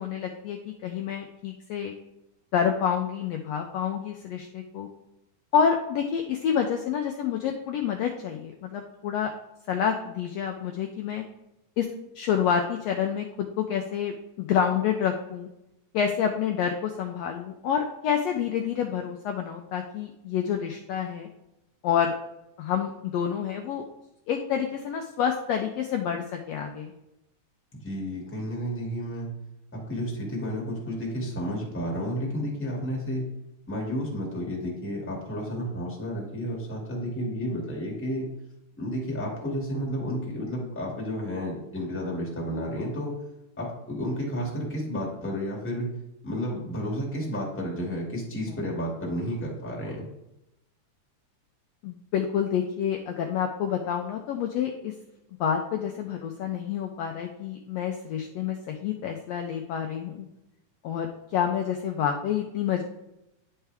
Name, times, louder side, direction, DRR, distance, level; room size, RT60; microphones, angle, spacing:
voice 1, 0.0-1.9 2.5-4.9 5.5-9.3 9.7-11.2 11.8-11.9 12.1-15.5 15.9-21.3 21.8-22.2 22.6-23.8 24.3-26.9 51.8-54.9 55.4-60.3 60.8-62.8, left 8 dB, 80° left, 3 dB, 1.5 m, -28 dB
voice 2, 27.7-29.3 29.7-33.3 33.7-38.3 38.7-43.1 43.6-45.9 46.2-50.0, equal, 5° left, -3 dB, 1.3 m, -31 dB
9.9 x 4.5 x 3.4 m, 0.88 s
omnidirectional pair, 3.5 m